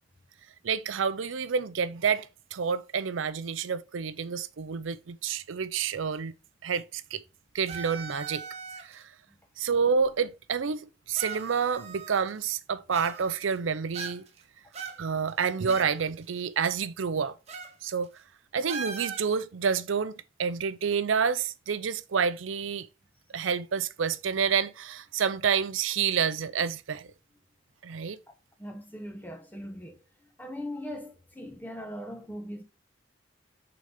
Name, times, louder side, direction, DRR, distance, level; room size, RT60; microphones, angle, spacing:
voice 1, 0.6-6.3 6.6-7.2 7.5-8.4 8.8-9.1 9.6-14.2 15.0-17.4 17.8-18.1 18.5-20.1 20.4-22.9 23.3-27.1 27.8-28.2, right 6 dB, 85° right, 0.5 m, -29 dB
sound 1, 7.7-9.0 10.0-10.1 11.1-12.4 12.9-13.6 13.9-14.4 14.7-15.9 16.2-16.3 17.5-17.7 18.0-18.2 18.7-19.3, right 5 dB, 35° right, 1.2 m, -40 dB
voice 2, 28.6-30.0 30.4-32.6, equal, 10° left, 1.0 m, -39 dB
6.5 x 4.0 x 4.8 m
head